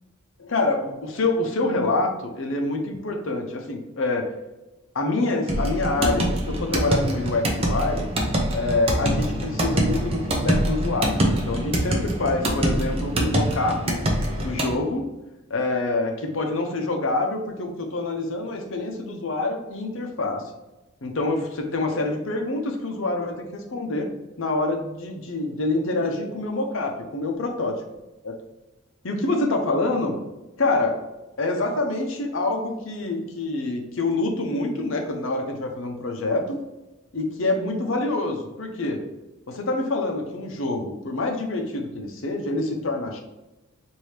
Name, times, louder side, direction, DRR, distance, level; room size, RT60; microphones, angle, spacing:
voice 1, 0.4-4.3 4.9-8.1 8.5-14.0 14.4-15.1 15.5-20.4 21.0-24.1 24.4-27.7 28.2-28.4 29.0-30.2 30.6-31.0 31.4-36.6 37.1-39.0 39.5-43.2, left 2 dB, 65° left, 3 dB, 0.7 m, -26 dB
sound 1, 5.5-14.8, right 1 dB, 25° right, 0.6 m, -24 dB
4.7 x 2.7 x 3.2 m, 1.0 s
head